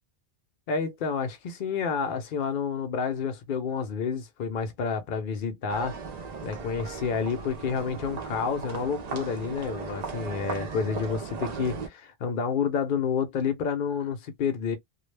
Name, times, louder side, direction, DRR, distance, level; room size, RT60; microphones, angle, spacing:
voice 1, 0.7-5.9 6.4-14.8, left 6 dB, 60° left, 0.7 m, -29 dB
sound 1, 5.7-11.9, right 5 dB, 50° right, 0.6 m, -37 dB
2.2 x 2.1 x 3.2 m
omnidirectional pair, 1.0 m